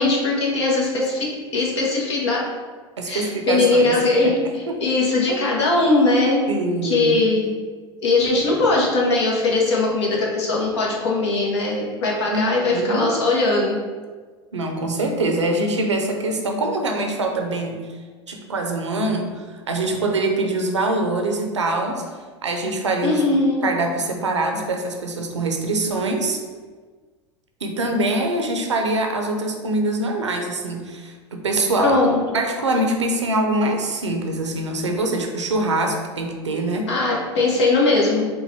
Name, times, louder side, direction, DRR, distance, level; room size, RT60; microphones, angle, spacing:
voice 1, 0.0-2.5 3.1-6.5 6.8-7.6 8.0-13.8 23.0-23.6 31.8-32.2 36.9-38.3, left 2 dB, 70° left, -3 dB, 1.3 m, -20 dB
voice 2, 3.0-3.9 4.2-4.8 5.3-5.5 6.5-7.3 12.3-13.1 14.5-17.8 18.3-22.0 22.4-23.2 23.6-26.4 27.6-36.9, right 2 dB, 85° right, 3 dB, 0.7 m, -24 dB
4.6 x 2.6 x 4.3 m, 1.5 s
hypercardioid pair, 85°, 15 cm